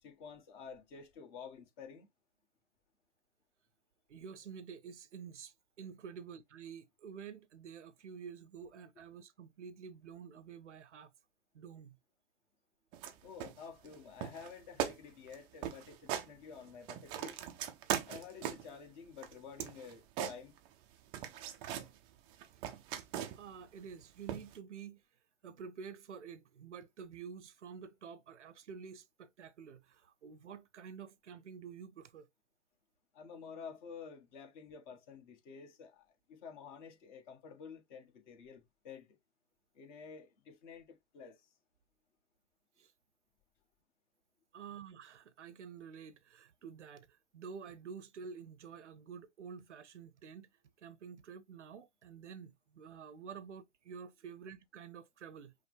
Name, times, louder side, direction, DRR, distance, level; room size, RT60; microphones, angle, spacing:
voice 1, 0.0-2.1 13.2-17.4 18.0-20.5 33.1-39.2 39.7-41.5, left 6 dB, 45° left, 1.4 m, -51 dB
voice 2, 4.1-11.1 11.5-12.0 22.5-22.6 23.4-25.0 25.4-32.3 42.8-42.9 44.5-50.5 50.8-55.5, right 6 dB, 85° right, 0.6 m, -49 dB
sound 1, 12.9-13.1 13.4-13.9 14.2-14.5 14.8-15.0 15.3-15.4 15.6-16.3 16.7-18.7 19.2-20.8 21.1-21.9 22.3-23.5 24.3-24.6, right 10 dB, 15° right, 0.3 m, -39 dB
5.5 x 2.2 x 3.2 m
hypercardioid pair, 115°, 34 cm